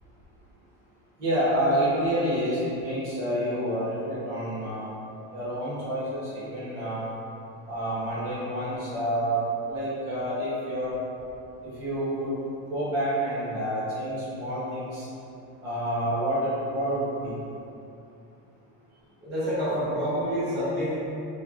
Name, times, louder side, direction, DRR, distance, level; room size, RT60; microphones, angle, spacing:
voice 1, 1.2-4.9 5.3-7.1 7.7-10.9 11.6-12.4 12.7-15.1 15.6-17.3, right 1 dB, 90° right, -10 dB, 1.4 m, -28 dB
voice 2, 19.2-21.0, equal, 30° right, -12 dB, 1.3 m, -27 dB
3.3 x 2.3 x 2.5 m, 2.7 s
cardioid pair, 150°, 35 cm